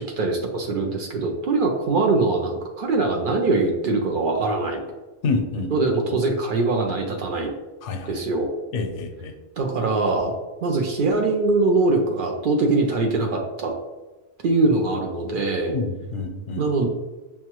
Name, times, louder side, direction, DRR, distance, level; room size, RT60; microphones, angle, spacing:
voice 1, 0.0-4.8 5.7-7.5 8.1-8.5 9.6-10.3 10.6-13.7 14.4-15.7 16.6-16.9, right 3 dB, 60° right, 1 dB, 0.6 m, -22 dB
voice 2, 5.2-5.9 7.8-8.2 8.7-9.4 15.7-16.6, left 3 dB, 85° left, 6 dB, 0.9 m, -28 dB
5.7 x 2.2 x 2.9 m, 1.1 s
omnidirectional pair, 1.2 m